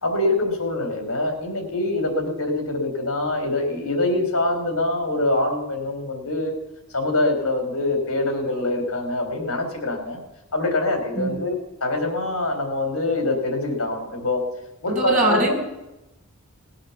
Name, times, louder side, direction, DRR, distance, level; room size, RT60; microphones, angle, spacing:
voice 1, 0.0-6.5 6.9-10.2 10.5-14.4 14.8-15.5, left 2 dB, 80° left, 4 dB, 3.6 m, -24 dB
voice 2, 14.9-15.5, right 2 dB, 30° right, 1 dB, 5.0 m, -21 dB
19.0 x 8.6 x 7.1 m, 0.95 s
head